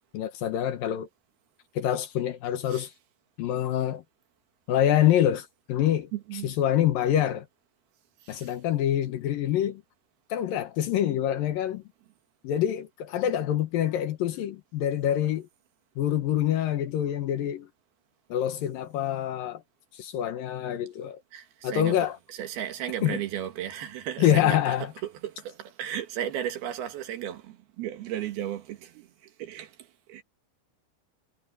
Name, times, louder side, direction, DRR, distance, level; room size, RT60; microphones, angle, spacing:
voice 1, 0.1-1.1 1.8-2.9 3.4-4.0 4.7-6.1 6.4-7.5 8.3-9.8 10.3-11.8 12.4-15.5 16.0-17.7 18.3-19.6 19.9-21.2 21.6-22.2 23.0-23.2 24.2-24.9, left 11 dB, 70° left, 2.6 m, -26 dB
voice 2, 6.1-6.6 8.2-8.5 21.3-30.2, right 11 dB, 70° right, 3.4 m, -35 dB
omnidirectional pair, 4.6 m